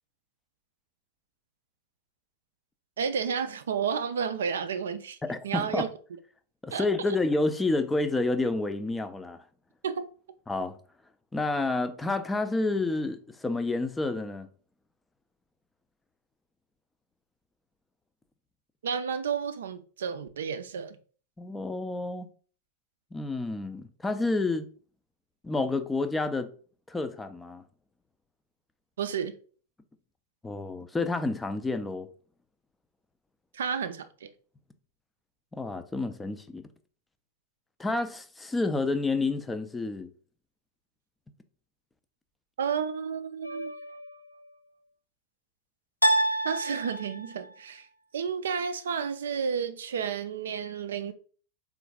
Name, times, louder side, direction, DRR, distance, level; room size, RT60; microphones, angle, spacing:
voice 1, 3.0-5.2 5.4-5.9 6.7-6.9 9.8-10.1 18.8-21.0 29.0-29.3 33.5-34.3 42.6-43.7 46.4-47.9 48.1-51.1, right 7 dB, 65° right, 0.3 m, -31 dB
voice 2, 5.2-5.9 6.6-9.4 10.5-10.8 11.3-14.5 21.4-22.3 23.1-24.7 25.4-26.5 26.9-27.6 30.4-32.1 35.5-36.6 37.8-40.1, left 3 dB, 10° left, 0.4 m, -29 dB
sound 1, 43.4-44.1 46.0-47.5, right 1 dB, 85° left, 0.3 m, -28 dB
3.7 x 2.4 x 3.5 m
figure-of-eight pair, 90°, 0 cm